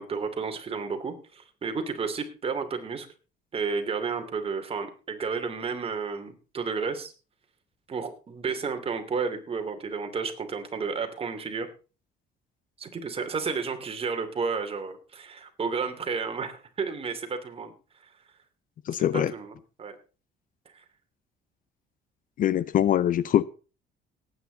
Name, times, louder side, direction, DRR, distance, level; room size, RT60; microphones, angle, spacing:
voice 1, 0.0-3.1 3.5-7.1 7.9-11.7 12.8-17.7 19.1-19.9 20.7-20.8, right 5 dB, 35° right, 2.9 m, -32 dB
voice 2, 18.9-19.3 22.4-23.4, left 11 dB, 55° left, 0.7 m, -23 dB
18.5 x 9.2 x 4.0 m
cardioid pair, 110°, 17 cm